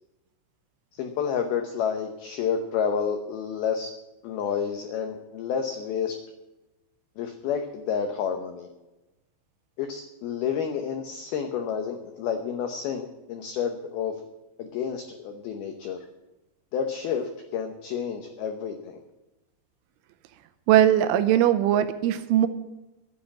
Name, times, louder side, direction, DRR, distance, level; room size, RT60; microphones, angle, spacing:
voice 1, 0.9-3.9 4.2-6.1 7.2-8.7 9.8-14.2 14.6-16.1 16.7-19.0, left 7 dB, 80° left, 5 dB, 2.2 m, -30 dB
voice 2, 20.7-22.5, right 11 dB, 80° right, 11 dB, 3.0 m, -20 dB
12.0 x 9.7 x 7.4 m, 1.0 s
omnidirectional pair, 5.8 m